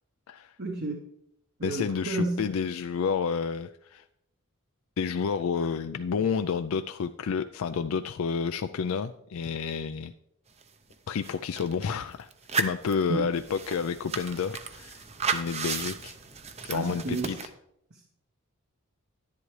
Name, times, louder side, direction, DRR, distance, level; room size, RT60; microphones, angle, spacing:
voice 1, 0.6-1.0 1.6-2.5 13.1-13.3 16.7-17.4 17.9-18.1, right 2 dB, 50° right, 2 dB, 1.1 m, -31 dB
voice 2, 1.6-4.0 5.0-10.1 11.1-12.3 12.5-15.0 15.3-16.1 16.6-17.4, left 6 dB, 70° left, 9 dB, 0.4 m, -30 dB
sound 1, 10.6-10.7 10.9-11.8 12.3-17.5, right 5 dB, 30° right, 0.7 m, -34 dB
11.0 x 10.5 x 3.2 m, 0.77 s
head